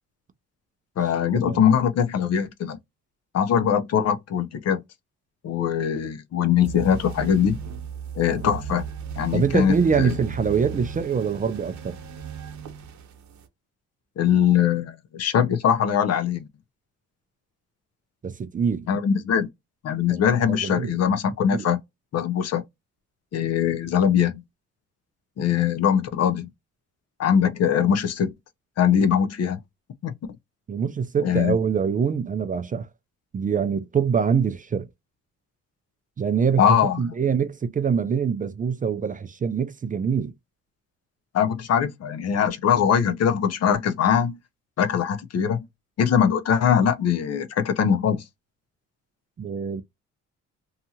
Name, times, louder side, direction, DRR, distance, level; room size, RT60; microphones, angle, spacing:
voice 1, 1.0-2.8 3.3-4.8 5.4-7.6 8.2-8.8 9.2-10.2 14.2-16.5 18.9-19.5 19.8-21.8 22.1-22.6 23.3-24.4 25.4-26.5 27.2-28.3 28.8-29.6 30.0-30.1 31.2-31.6 36.6-37.2 41.3-44.4 44.8-45.6 46.0-48.2, left 8 dB, 55° left, 0.6 m, -22 dB
sound 1, 6.6-13.5, right 6 dB, 70° right, 0.9 m, -36 dB
voice 2, 9.3-12.0 18.2-18.9 20.1-20.9 21.5-21.6 30.7-32.9 33.3-34.9 36.2-36.6 37.0-40.3 49.4-49.8, right 6 dB, 30° right, 0.4 m, -24 dB
2.7 x 2.4 x 2.7 m
cardioid pair, 90°, 30 cm